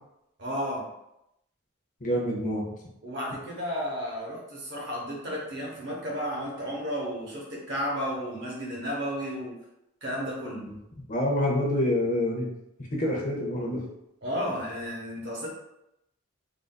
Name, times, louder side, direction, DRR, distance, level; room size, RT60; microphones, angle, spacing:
voice 1, 0.4-0.8 3.0-9.5 10.0-10.6 14.2-15.5, equal, 50° right, -3 dB, 0.9 m, -33 dB
voice 2, 2.0-2.6 11.1-12.5 12.9-13.8, left 1 dB, 35° left, -2 dB, 0.7 m, -26 dB
3.7 x 2.5 x 2.2 m, 0.84 s
head